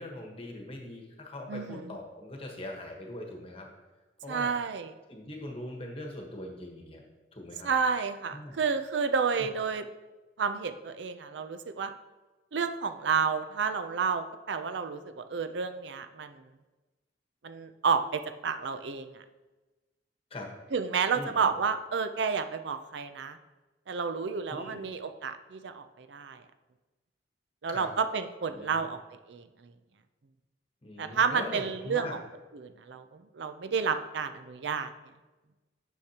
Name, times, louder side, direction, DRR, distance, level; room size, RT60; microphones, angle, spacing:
voice 1, 0.0-3.7 4.2-4.5 5.1-7.0 7.3-7.7 8.3-8.6 20.3-20.5 21.1-21.5 24.5-24.8 27.7-27.9 28.5-28.8 30.8-32.2, left 1 dB, 30° left, 1 dB, 1.2 m, -41 dB
voice 2, 1.5-2.0 4.3-4.9 7.6-9.9 10.4-11.9 12.5-16.4 17.4-19.2 20.7-23.4 23.9-26.4 27.6-29.0 29.3-29.7 31.0-32.2 32.5-34.9, right 5 dB, 80° right, 9 dB, 0.5 m, -31 dB
9.8 x 6.4 x 2.9 m, 1.2 s
head